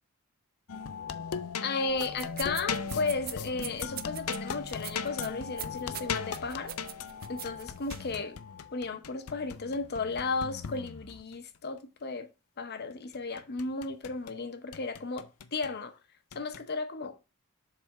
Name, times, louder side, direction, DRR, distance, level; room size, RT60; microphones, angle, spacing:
sound 1, 0.7-11.3 13.1-14.4 14.7-15.7 16.3-16.6, left 6 dB, 85° left, 0.6 m, -38 dB
voice 1, 1.6-6.8 7.3-8.4 8.7-12.3 12.6-16.0 16.3-17.2, left 4 dB, 45° left, 0.8 m, -34 dB
sound 2, 1.9-8.1, right 12 dB, 40° right, 0.4 m, -45 dB
7.4 x 3.5 x 4.7 m
head